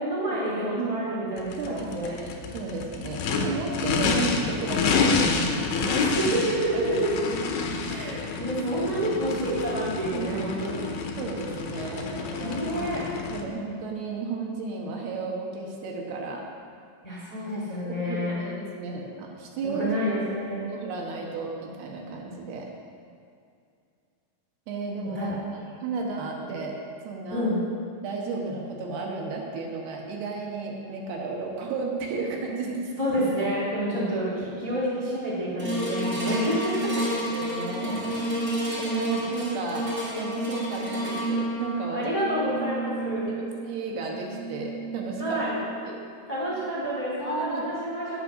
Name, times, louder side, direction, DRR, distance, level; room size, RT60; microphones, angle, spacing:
voice 1, 0.0-2.1 5.9-7.1 7.8-10.8 12.4-13.0 17.0-18.3 19.6-20.7 25.0-25.3 27.3-27.6 33.0-36.9 41.9-43.4 45.2-45.6 46.3-48.2, right 1 dB, 10° left, -7 dB, 1.9 m, -28 dB
voice 2, 0.7-1.1 1.6-2.3 2.5-5.3 5.7-6.1 6.7-6.8 8.8-8.9 10.1-10.5 11.2-13.0 13.3-16.4 17.9-20.1 20.6-22.7 24.7-25.3 25.8-26.8 27.0-27.5 28.0-32.9 33.8-34.0 36.2-36.4 36.9-38.2 38.8-42.1 43.3-45.4 45.8-46.0 47.2-47.7, right 4 dB, 75° right, 0 dB, 3.2 m, -33 dB
Race car auto racing / Idling / Accelerating revving vroom, 1.4-13.4, left 4 dB, 80° left, 1.7 m, -28 dB
sound 1, 35.6-46.0 46.5-46.6, right 1 dB, 20° right, 2.4 m, -31 dB
9.7 x 8.4 x 6.2 m, 2.4 s
omnidirectional pair, 4.6 m